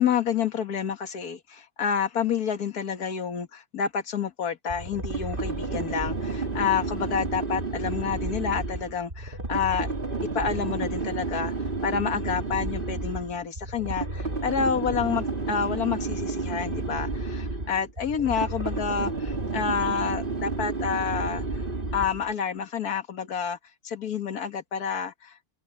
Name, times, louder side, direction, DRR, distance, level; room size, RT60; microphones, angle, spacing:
voice 1, 0.0-9.9 10.4-11.5 11.8-21.4 21.9-23.6 23.8-25.4, left 7 dB, 45° left, 1.9 m, -29 dB
sound 1, 4.7-22.3, right 3 dB, 25° right, 3.1 m, -31 dB
open air
omnidirectional pair, 2.3 m